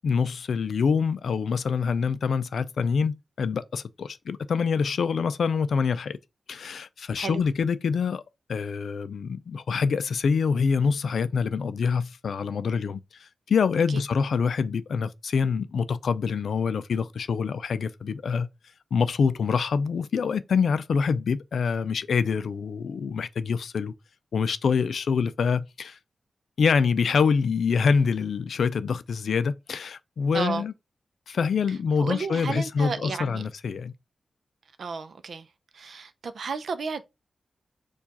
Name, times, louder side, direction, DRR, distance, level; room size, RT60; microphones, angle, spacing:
voice 1, 0.0-6.2 6.5-8.2 8.5-18.5 18.9-23.9 24.3-26.0 26.6-30.7 31.3-33.9, left 5 dB, 80° left, 0.3 m, -25 dB
voice 2, 30.3-30.6 32.0-33.5 34.8-35.5 35.7-37.0, right 5 dB, 65° right, 0.5 m, -32 dB
4.6 x 2.4 x 4.0 m
wide cardioid pair, 165°, 0 cm